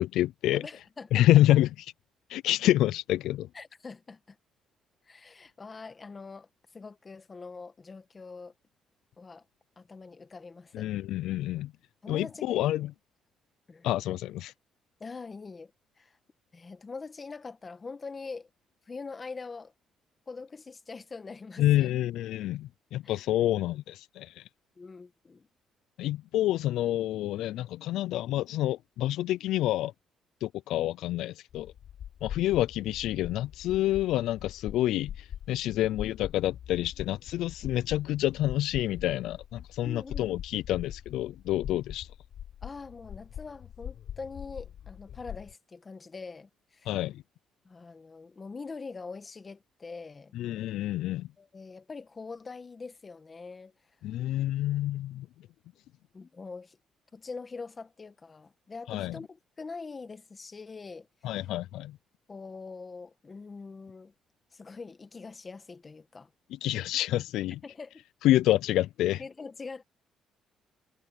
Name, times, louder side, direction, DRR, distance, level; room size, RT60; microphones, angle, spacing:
voice 1, 0.0-0.6 1.1-1.7 2.3-3.5 10.7-11.7 12.1-12.9 13.8-14.5 21.6-24.4 26.0-29.9 30.4-31.7 32.2-42.1 46.9-47.2 50.3-51.3 54.0-55.3 58.9-59.2 61.2-62.0 66.5-67.6 68.2-69.2, left 14 dB, 85° left, 0.3 m, -28 dB
voice 2, 0.5-1.3 3.5-4.4 5.1-8.5 9.2-9.4 9.8-10.9 12.0-12.7 13.7-13.9 15.0-15.7 16.0-16.2 16.5-18.5 18.9-19.7 20.3-21.9 23.0-23.3 24.8-25.5 35.8-35.9 39.8-40.3 42.6-46.9 47.6-50.3 51.4-53.7 56.1-56.8 57.1-61.1 62.3-64.1 64.5-66.3 67.6-68.0 69.2-69.8, left 4 dB, 25° left, 1.6 m, -43 dB
sound 1, 31.5-45.5, left 10 dB, 65° left, 6.1 m, -43 dB
cardioid pair, 115°, 0 cm